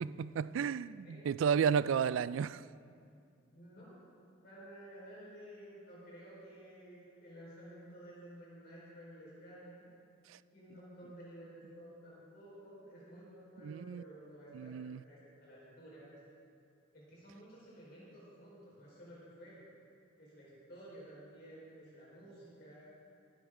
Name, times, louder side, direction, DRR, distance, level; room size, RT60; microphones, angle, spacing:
voice 1, 0.0-2.6 10.3-10.4 13.6-14.0 14.5-15.0, right 7 dB, 85° right, 0.3 m, -32 dB
voice 2, 3.5-4.1 4.4-9.9 10.5-16.2 16.9-19.7 20.2-22.9, right 1 dB, 55° left, 4.4 m, -53 dB
22.0 x 11.0 x 3.7 m
head